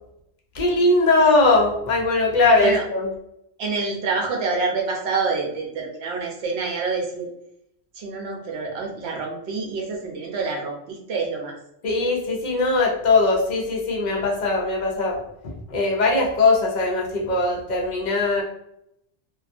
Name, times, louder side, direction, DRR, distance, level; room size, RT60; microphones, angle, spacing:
voice 1, 0.5-3.1 11.8-18.4, left 3 dB, 55° left, -1 dB, 0.5 m, -20 dB
voice 2, 3.6-7.3 8.0-11.5, right 4 dB, 70° right, 1 dB, 0.9 m, -27 dB
2.5 x 2.3 x 2.4 m, 0.78 s
omnidirectional pair, 1.2 m